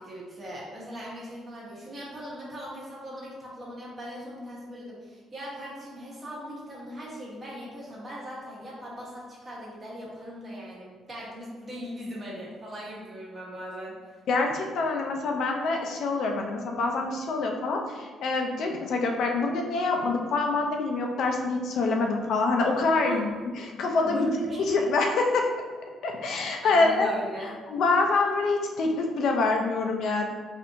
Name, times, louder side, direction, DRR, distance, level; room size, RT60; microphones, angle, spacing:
voice 1, 0.0-14.2 23.0-23.2 24.0-24.6 26.6-27.5, equal, 30° right, -6 dB, 1.2 m, -39 dB
voice 2, 14.3-23.3 23.6-24.3 24.7-25.5 26.0-27.1 27.7-30.2, left 3 dB, 65° left, 2 dB, 0.5 m, -26 dB
4.3 x 2.5 x 2.6 m, 1.5 s
cardioid pair, 140°, 0 cm